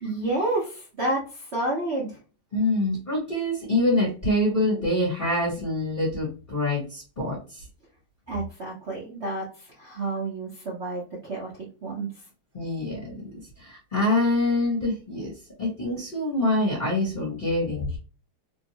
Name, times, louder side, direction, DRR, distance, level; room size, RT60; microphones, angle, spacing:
voice 1, 0.0-2.2 8.3-12.1, right 2 dB, 60° right, -5 dB, 0.7 m, -30 dB
voice 2, 2.5-7.6 12.5-13.1 13.6-15.3 15.6-18.0, left 1 dB, 30° left, -6 dB, 1.0 m, -25 dB
3.2 x 2.7 x 2.8 m, 0.35 s
omnidirectional pair, 2.3 m